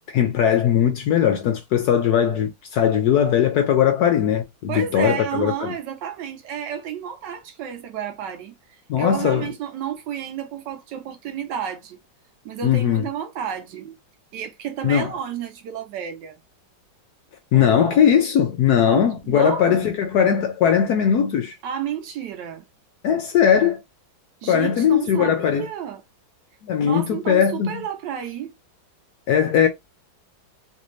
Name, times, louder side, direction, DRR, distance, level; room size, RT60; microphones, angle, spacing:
voice 1, 0.1-5.7 8.9-9.4 12.6-13.0 14.8-15.1 17.5-21.5 23.0-23.8 24.5-25.7 26.6-27.8 29.3-29.7, left 8 dB, 70° left, 0.9 m, -19 dB
voice 2, 4.7-12.0 12.4-14.0 14.3-16.4 17.5-18.1 18.8-19.9 21.6-22.7 24.4-26.0 26.8-28.5, right 9 dB, 70° right, 1.3 m, -31 dB
3.3 x 2.6 x 3.0 m
omnidirectional pair, 2.1 m